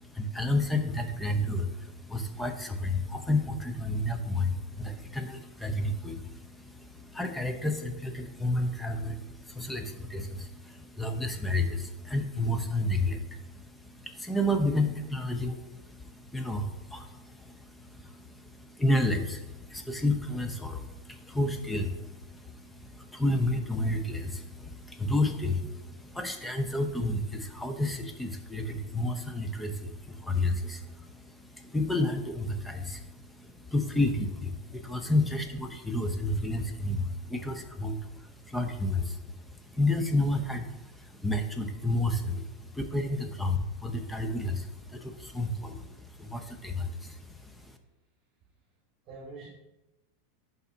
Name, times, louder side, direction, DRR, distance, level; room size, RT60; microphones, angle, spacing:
voice 1, 0.0-39.2 39.6-47.8, left 1 dB, 5° left, 6 dB, 0.7 m, -31 dB
voice 2, 49.0-49.5, right 3 dB, 35° right, -6 dB, 2.1 m, -46 dB
11.5 x 4.1 x 2.8 m, 0.97 s
supercardioid pair, 135°, 0 cm